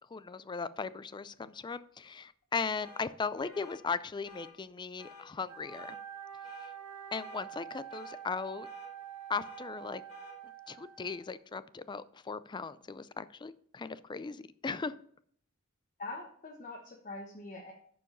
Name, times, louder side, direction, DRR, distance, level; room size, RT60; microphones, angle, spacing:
voice 1, 0.1-6.0 7.1-8.7 9.3-10.0 10.7-15.0, left 4 dB, 20° left, 15 dB, 0.3 m, -38 dB
sound 1, 2.8-3.1 3.5-3.8 4.2-4.5 5.0-5.2 5.7-6.0 6.4-6.7 7.2-7.4 7.9-8.2 8.6-8.9 9.4-9.6 10.1-10.4, left 5 dB, 70° left, 1.8 m, -52 dB
Wind instrument woodwind instrument, 5.4-11.4, right 10 dB, 75° right, 1.4 m, -47 dB
voice 2, 16.0-17.7, left 2 dB, 40° left, -1 dB, 1.1 m, -43 dB
11.0 x 4.7 x 5.3 m, 0.62 s
head